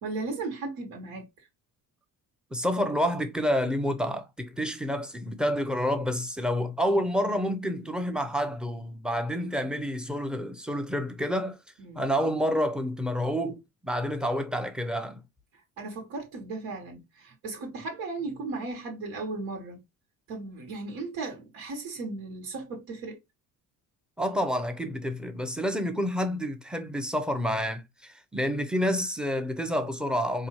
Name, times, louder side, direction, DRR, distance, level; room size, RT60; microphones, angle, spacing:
voice 1, 0.0-1.5 11.8-12.1 15.8-19.8 20.3-23.2, right 3 dB, 85° right, 1.6 m, -36 dB
voice 2, 2.5-11.6 12.0-15.2 24.2-30.5, equal, ahead, 0.5 m, -29 dB
4.2 x 2.7 x 2.9 m
cardioid pair, 130°, 35 cm